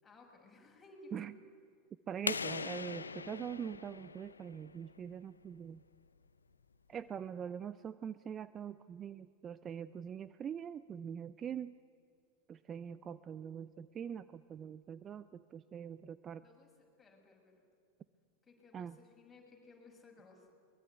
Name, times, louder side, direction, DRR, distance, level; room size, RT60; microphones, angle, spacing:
voice 1, 0.0-1.5 16.4-16.7 17.0-17.5 18.4-20.5, left 2 dB, 15° left, -1 dB, 6.6 m, -58 dB
voice 2, 2.1-5.8 6.9-11.7 12.5-16.4 18.7-19.0, right 8 dB, 30° right, 15 dB, 0.6 m, -43 dB
sound 1, 2.3-4.9, left 5 dB, 85° left, 0.7 m, -40 dB
22.0 x 22.0 x 9.4 m, 2.2 s
figure-of-eight pair, 90°, 0 cm